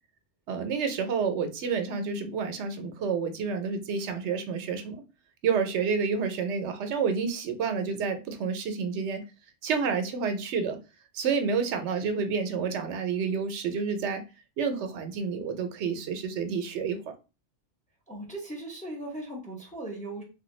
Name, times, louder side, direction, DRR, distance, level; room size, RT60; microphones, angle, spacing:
voice 1, 0.5-5.0 5.4-9.2 9.6-10.8 11.1-14.2 14.6-17.0, right 5 dB, 80° right, 7 dB, 0.9 m, -29 dB
voice 2, 18.1-20.2, right 1 dB, 10° left, -1 dB, 0.6 m, -38 dB
3.2 x 2.2 x 3.0 m, 0.30 s
omnidirectional pair, 1.2 m